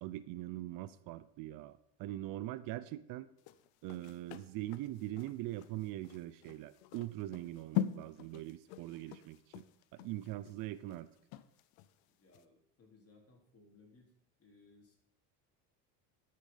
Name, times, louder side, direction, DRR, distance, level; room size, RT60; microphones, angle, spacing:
voice 1, 0.0-3.3 3.8-9.6 9.9-11.1, right 15 dB, 60° right, 15 dB, 0.6 m, -42 dB
sound 1, 3.4-11.9 12.3-12.4, left 12 dB, 70° left, 0.8 m, -42 dB
voice 2, 12.1-15.0, left 3 dB, 35° left, 0 dB, 3.8 m, -64 dB
12.0 x 6.7 x 5.7 m, 0.73 s
supercardioid pair, 95°, 39 cm